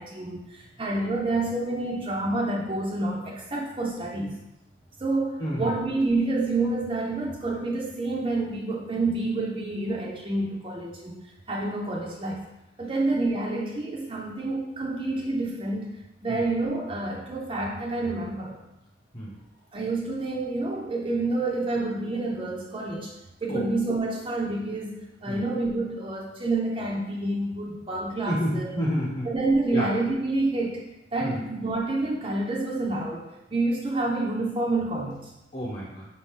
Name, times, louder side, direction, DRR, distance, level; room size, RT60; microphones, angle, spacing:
voice 1, 0.0-4.4 5.0-12.4 12.8-15.9 16.2-18.6 19.7-23.1 23.4-28.7 29.3-35.3, right 2 dB, 25° right, -2 dB, 0.4 m, -28 dB
voice 2, 5.4-5.8 16.3-16.4 19.1-19.4 23.5-23.7 25.3-25.4 27.6-27.7 28.3-29.3 29.7-29.9 31.2-31.4 35.5-36.1, equal, 40° left, -6 dB, 0.9 m, -29 dB
5.3 x 2.7 x 3.6 m, 0.93 s
head